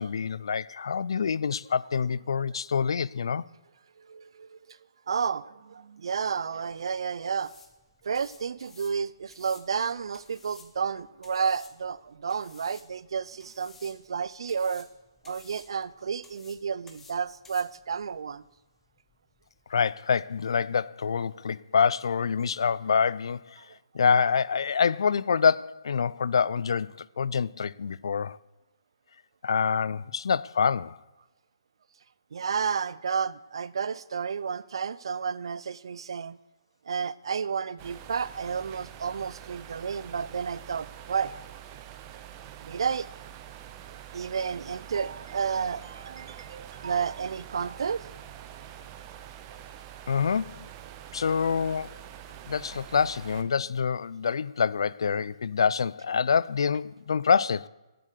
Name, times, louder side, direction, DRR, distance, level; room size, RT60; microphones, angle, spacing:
voice 1, 0.0-3.4 19.7-23.4 23.9-28.4 29.4-30.9 50.1-50.7 51.1-51.9 52.5-57.7, left 6 dB, 70° left, 0.3 m, -26 dB
voice 2, 4.0-4.8 5.1-7.5 8.0-14.9 15.3-18.4 32.3-36.4 36.9-41.4 42.6-43.1 44.1-48.0, right 6 dB, 70° right, 0.5 m, -31 dB
sound 1, 6.3-19.7, left 4 dB, 10° left, 1.1 m, -56 dB
sound 2, 37.8-53.4, right 10 dB, 30° right, 0.8 m, -45 dB
11.0 x 7.7 x 6.5 m
hypercardioid pair, 145°, 3 cm